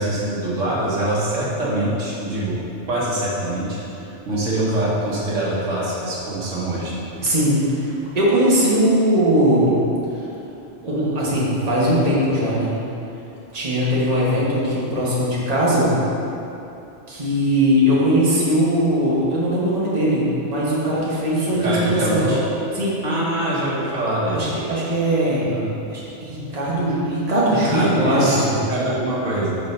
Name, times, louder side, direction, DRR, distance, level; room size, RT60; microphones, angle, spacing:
voice 1, 0.0-2.5 2.9-6.9 21.6-22.4 23.0-24.4 25.4-25.7 27.6-29.6, right 1 dB, 85° right, -6 dB, 1.7 m, -24 dB
voice 2, 7.2-9.7 10.8-12.7 13.5-15.9 17.1-22.4 22.8-23.0 24.3-25.4 25.9-28.4, equal, 30° right, -7 dB, 1.4 m, -20 dB
6.6 x 4.1 x 5.4 m, 2.8 s
omnidirectional pair, 1.3 m